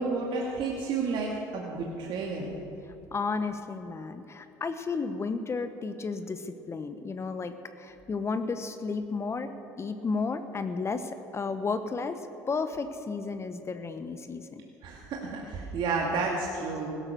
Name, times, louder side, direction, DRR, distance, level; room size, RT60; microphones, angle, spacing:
voice 1, 0.0-2.5 14.8-16.9, right 4 dB, 60° right, -2 dB, 2.2 m, -31 dB
voice 2, 3.1-12.2 12.5-14.6, left 4 dB, 30° left, 9 dB, 1.0 m, -33 dB
16.5 x 12.5 x 6.8 m, 2.9 s
hypercardioid pair, 75°, 9 cm